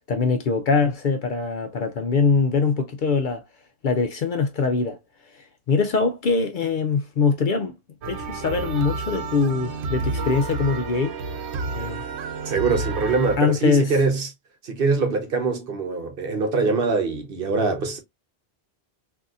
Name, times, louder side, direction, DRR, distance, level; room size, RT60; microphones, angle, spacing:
voice 1, 0.1-3.4 3.8-5.0 5.3-7.8 8.1-11.2 11.8-12.1 13.4-13.9, left 4 dB, 60° left, 0.6 m, -23 dB
sound 1, 8.0-13.4, right 3 dB, 80° right, 0.9 m, -30 dB
voice 2, 12.4-14.3 14.6-18.0, right 4 dB, 60° right, 1.0 m, -23 dB
3.9 x 2.7 x 2.3 m
omnidirectional pair, 1.1 m